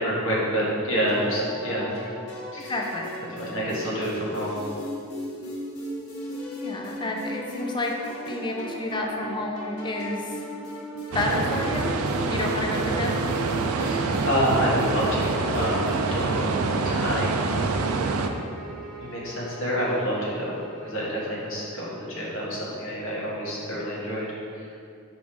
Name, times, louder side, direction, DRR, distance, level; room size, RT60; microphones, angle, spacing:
voice 1, 0.0-1.8 2.5-2.7 3.4-4.6 13.7-16.5 16.8-17.5 19.0-20.5 20.8-24.7, equal, 60° left, -5 dB, 1.4 m, -28 dB
sound 1, 1.1-17.0, equal, 85° left, 1.0 m, -37 dB
voice 2, 2.6-3.1 6.6-7.9 8.3-10.3 11.1-11.9 12.3-13.2, left 2 dB, 20° left, 0 dB, 0.5 m, -30 dB
sound 2, 11.1-18.3, right 3 dB, 85° right, 0.4 m, -26 dB
sound 3, 17.1-22.0, right 1 dB, ahead, 1.2 m, -44 dB
5.1 x 3.6 x 5.1 m, 2.4 s
head